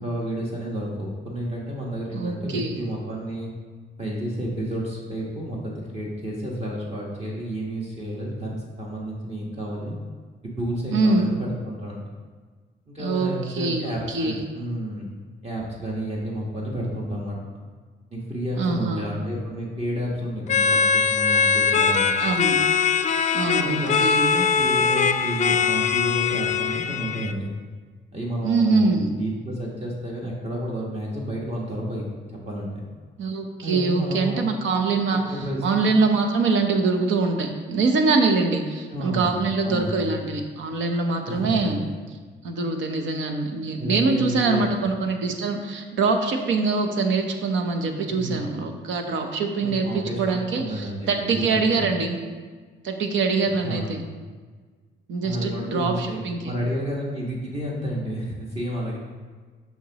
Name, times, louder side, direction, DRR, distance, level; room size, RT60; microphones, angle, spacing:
voice 1, 0.0-3.5 4.0-9.9 10.6-12.0 12.9-15.1 15.4-17.4 18.1-22.1 23.6-27.5 28.1-32.1 32.5-32.8 33.6-34.5 35.3-35.8 38.9-40.1 41.3-41.9 43.8-44.9 48.1-48.5 49.6-51.9 53.6-54.0 55.2-59.0, right 1 dB, 30° right, -4 dB, 1.3 m, -31 dB
voice 2, 2.1-2.7 10.9-11.3 13.0-14.4 18.6-19.0 22.2-22.5 23.3-24.3 28.4-29.1 33.2-35.2 35.6-41.8 42.4-52.2 52.8-54.0 55.1-56.4, right 4 dB, 75° right, 4 dB, 0.9 m, -24 dB
sound 1, 20.5-27.3, left 6 dB, 35° left, 0.4 m, -21 dB
7.0 x 5.9 x 2.9 m, 1.5 s
cardioid pair, 90°, 20 cm